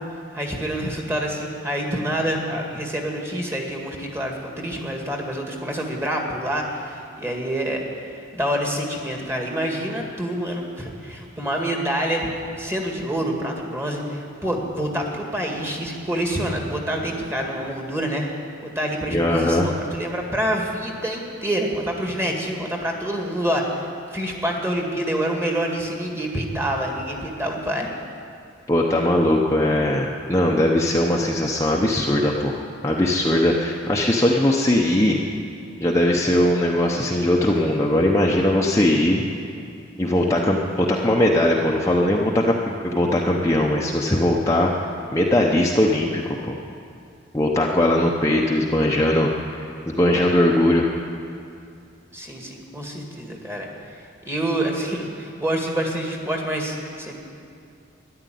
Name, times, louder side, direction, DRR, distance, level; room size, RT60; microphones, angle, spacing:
voice 1, 0.3-18.3 18.6-27.9 52.1-53.7 54.3-57.2, right 1 dB, 15° right, 0 dB, 1.9 m, -27 dB
voice 2, 19.1-19.6 28.7-32.6 32.8-35.2 35.8-39.2 40.0-44.7 45.1-46.6 47.3-49.3 49.9-50.9, left 1 dB, 15° left, -2 dB, 0.9 m, -20 dB
13.5 x 11.0 x 9.3 m, 2.4 s
head